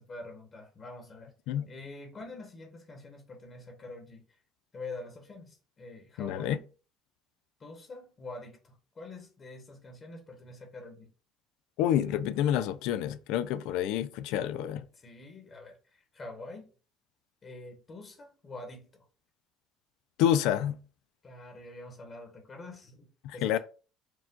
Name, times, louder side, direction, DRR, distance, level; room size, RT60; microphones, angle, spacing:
voice 1, 0.0-1.3 1.7-4.3 4.7-6.7 7.6-11.1 14.9-16.7 17.4-19.0 21.2-23.6, left 2 dB, 30° left, 1.2 m, -46 dB
voice 2, 6.2-6.6 11.8-14.9 20.2-20.8 23.2-23.6, left 10 dB, 80° left, 0.4 m, -28 dB
4.7 x 2.4 x 3.8 m
cardioid pair, 120°, 0 cm